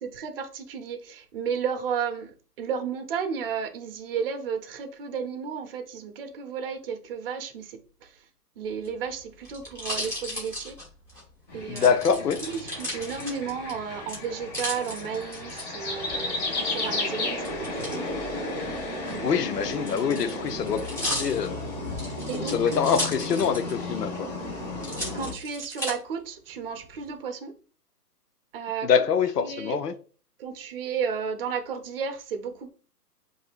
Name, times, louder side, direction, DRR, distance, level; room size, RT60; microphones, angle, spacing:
voice 1, 0.0-8.3 8.6-10.8 11.5-18.1 22.3-23.2 25.1-27.5 28.5-28.9 29.4-29.8 30.4-32.7, right 6 dB, 35° right, 0.7 m, -33 dB
sound 1, 8.7-11.2 11.8-13.7 14.1-15.6 17.4-18.0 18.9-23.8 24.1-24.2 24.8-25.9 26.6-27.1, equal, 5° left, 1.0 m, -35 dB
sound 2, 11.5-25.3, left 2 dB, 25° left, 1.2 m, -33 dB
voice 2, 11.7-12.4 19.2-21.6 22.3-24.3 28.8-29.9, left 7 dB, 75° left, 0.8 m, -25 dB
7.4 x 2.7 x 2.4 m
hypercardioid pair, 150°, 48 cm